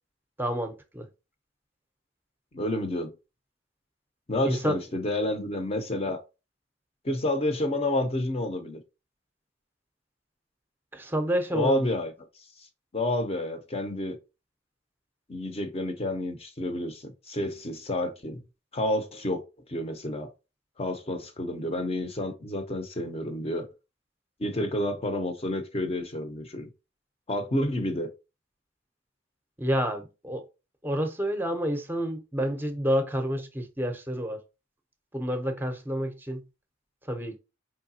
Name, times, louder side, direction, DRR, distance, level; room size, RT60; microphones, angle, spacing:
voice 1, 0.4-1.1 4.4-4.8 10.9-11.9 29.6-30.4 30.8-34.4 35.1-36.4 37.0-37.4, equal, 10° right, 0.7 m, -29 dB
voice 2, 2.5-3.1 4.3-6.2 7.0-8.8 11.5-12.1 12.9-14.2 15.3-18.4 18.7-19.4 19.7-20.3 20.8-23.7 24.4-26.7 27.3-28.1, left 1 dB, 30° left, 0.7 m, -29 dB
4.8 x 3.3 x 2.7 m
head